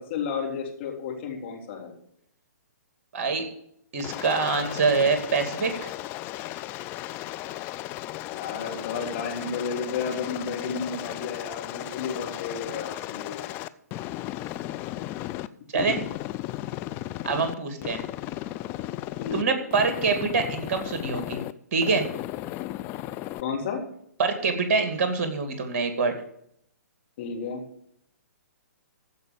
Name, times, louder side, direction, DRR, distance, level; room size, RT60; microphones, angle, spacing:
voice 1, 0.1-1.9 8.3-13.4 15.7-15.8 19.2-19.6 23.4-23.8 27.2-27.6, left 6 dB, 40° left, 0 dB, 3.3 m, -32 dB
voice 2, 3.1-3.5 3.9-5.9 15.7-16.0 17.2-18.0 19.3-21.4 21.7-22.1 24.2-26.1, right 4 dB, 45° right, 7 dB, 2.5 m, -25 dB
Aircraft, 4.0-15.5 15.8-17.5 17.8-19.4 19.7-21.5 21.8-23.4, left 15 dB, 25° left, 0.5 m, -35 dB
15.0 x 5.3 x 8.5 m, 0.71 s
figure-of-eight pair, 125°, 9 cm